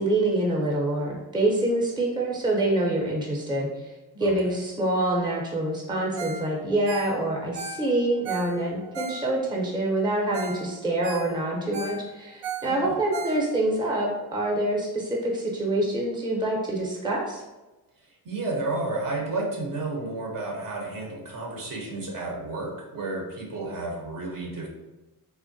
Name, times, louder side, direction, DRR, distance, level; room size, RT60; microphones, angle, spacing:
voice 1, 0.0-17.4, right 1 dB, 10° right, -2 dB, 0.7 m, -26 dB
voice 2, 4.2-4.5 12.7-13.0 18.2-24.7, right 2 dB, 55° right, 0 dB, 0.8 m, -32 dB
Ringtone, 6.2-6.5 6.7-9.6 10.0-10.1 10.3-10.6 10.9-13.8 14.2-14.3, right 3 dB, 90° right, 0.6 m, -36 dB
3.4 x 2.1 x 2.6 m, 1.1 s
cardioid pair, 80°, 40 cm